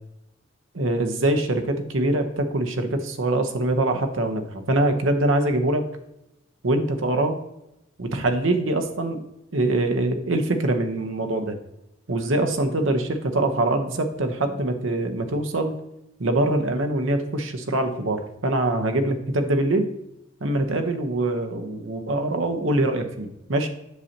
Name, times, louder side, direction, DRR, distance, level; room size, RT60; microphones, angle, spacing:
voice 1, 0.7-5.8 6.6-7.4 8.0-9.2 9.5-11.6 12.1-15.7 16.2-19.9 20.4-23.7, right 2 dB, 70° right, 6 dB, 0.9 m, -24 dB
8.1 x 6.5 x 2.9 m, 0.86 s
head